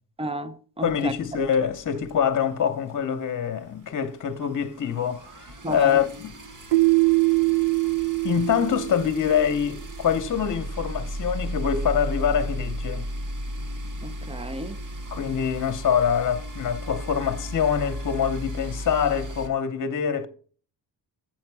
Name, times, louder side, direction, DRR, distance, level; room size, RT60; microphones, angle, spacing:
voice 1, 0.2-1.1 5.6-6.0 14.0-14.8, right 1 dB, 15° right, 0.5 m, -33 dB
voice 2, 0.8-6.4 8.2-13.1 15.1-20.3, left 8 dB, 45° left, 0.9 m, -25 dB
sound 1, 0.8-2.6 2.9-3.1 3.4-3.5 3.7-19.5, equal, 45° right, 1.3 m, -35 dB
Keyboard (musical), 6.7-9.5, right 25 dB, 70° right, 0.6 m, -22 dB
7.5 x 6.5 x 4.6 m
wide cardioid pair, 135°, 43 cm